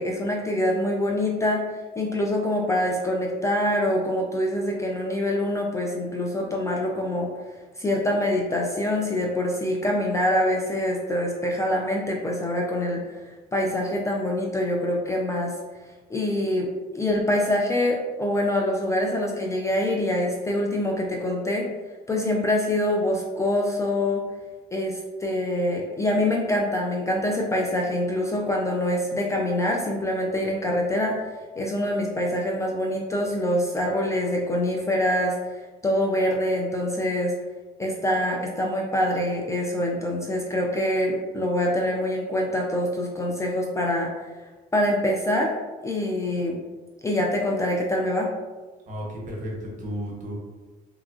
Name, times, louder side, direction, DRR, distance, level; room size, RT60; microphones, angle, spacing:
voice 1, 0.0-1.6 2.0-7.3 7.8-15.6 16.1-21.7 22.1-24.2 24.7-31.2 31.6-35.3 35.8-37.3 37.8-44.1 44.7-45.5 45.8-46.6 47.0-48.3, left 1 dB, 15° left, 0 dB, 0.3 m, -25 dB
voice 2, 48.9-50.3, equal, 50° right, -2 dB, 0.9 m, -33 dB
2.8 x 2.3 x 2.4 m, 1.3 s
cardioid pair, 110°, 17 cm